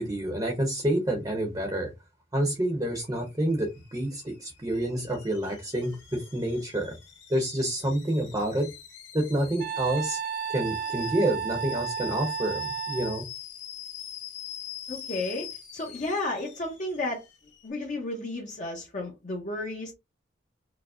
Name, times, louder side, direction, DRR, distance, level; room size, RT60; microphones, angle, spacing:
voice 1, 0.0-1.9 2.3-7.0 7.3-8.7 9.1-10.2 10.5-13.3, right 1 dB, 20° right, 0.7 m, -28 dB
Alarm / Boiling, 2.8-17.7, left 10 dB, 90° left, 1.8 m, -44 dB
Wind instrument woodwind instrument, 9.6-13.2, right 8 dB, 50° right, 0.4 m, -33 dB
voice 2, 14.9-17.2 17.6-19.9, left 2 dB, 40° left, 0.7 m, -33 dB
4.7 x 2.0 x 2.4 m
head